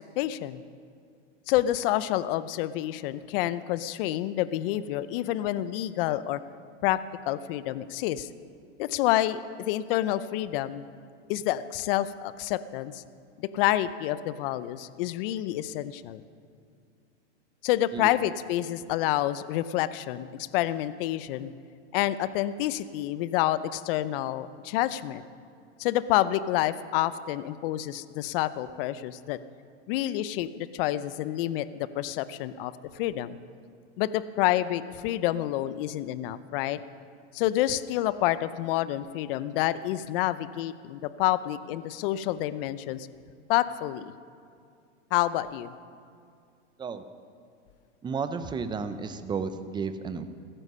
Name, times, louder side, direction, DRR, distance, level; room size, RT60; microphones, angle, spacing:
voice 1, 0.2-0.6 1.5-6.4 6.8-8.3 8.8-10.8 11.3-13.0 13.4-16.2 17.6-21.5 21.9-25.3 25.8-29.4 29.9-33.4 34.0-36.8 37.3-43.1 43.5-44.1 45.1-45.7, left 14 dB, 50° left, 15 dB, 0.7 m, -28 dB
voice 2, 48.0-50.2, right 5 dB, 10° right, 10 dB, 0.7 m, -32 dB
16.5 x 14.5 x 5.5 m, 2.3 s
hypercardioid pair, 125°, 36 cm